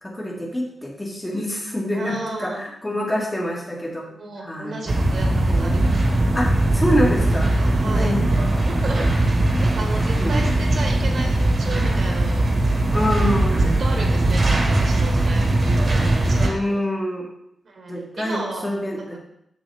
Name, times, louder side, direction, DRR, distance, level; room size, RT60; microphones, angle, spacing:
voice 1, 0.0-4.1 4.4-4.9 5.5-5.9 6.3-7.5 8.0-8.5 8.8-9.3 10.2-10.5 12.9-13.6 16.4-17.3 17.9-19.2, left 1 dB, 15° left, -2 dB, 2.0 m, -26 dB
voice 2, 1.9-2.7 3.1-3.3 4.1-6.3 7.3-8.1 8.6-12.5 13.6-16.8 17.6-18.7 19.0-19.2, right 3 dB, 65° right, 0 dB, 1.7 m, -34 dB
sound 1, 4.9-16.5, right 2 dB, 45° right, 1.6 m, -20 dB
6.9 x 6.9 x 3.6 m, 0.76 s
cardioid pair, 85°, 0 cm